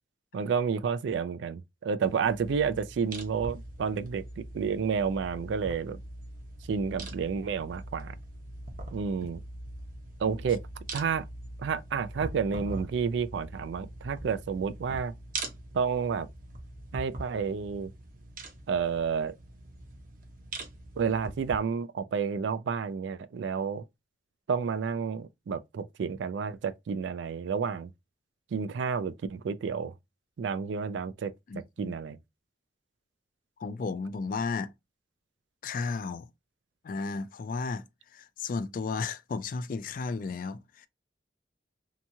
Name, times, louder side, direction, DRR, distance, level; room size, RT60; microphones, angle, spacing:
voice 1, 0.3-6.0 6.7-8.1 8.9-9.4 10.2-10.6 10.9-11.2 11.6-15.1 15.7-16.3 16.9-17.9 18.7-19.3 21.0-23.8 24.5-27.9 28.5-29.9 30.4-31.3 31.8-32.2, right 6 dB, 80° right, 0.3 m, -30 dB
sound 1, 2.0-21.6, right 2 dB, 50° right, 0.7 m, -43 dB
voice 2, 31.5-31.9 33.6-34.7 35.6-36.3 36.8-37.8 38.1-40.9, left 4 dB, 50° left, 0.3 m, -34 dB
2.9 x 2.3 x 2.6 m
head